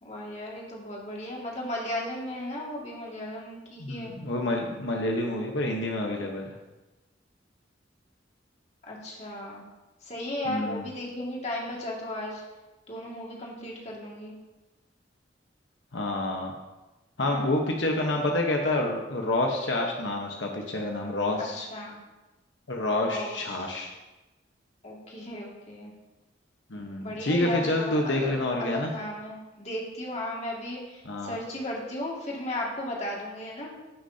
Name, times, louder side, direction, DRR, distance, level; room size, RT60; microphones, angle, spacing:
voice 1, 0.0-4.2 8.9-9.6 10.0-12.4 12.9-14.3 17.2-17.5 18.0-18.1 21.4-22.0 23.0-23.7 24.8-25.9 27.0-33.7, left 1 dB, 40° left, -3 dB, 2.1 m, -35 dB
voice 2, 3.8-6.5 10.4-10.9 15.9-16.5 17.2-21.7 22.7-23.9 26.7-28.9 31.0-31.4, left 1 dB, 85° left, 0 dB, 1.1 m, -28 dB
15.5 x 6.4 x 2.8 m, 1.1 s
head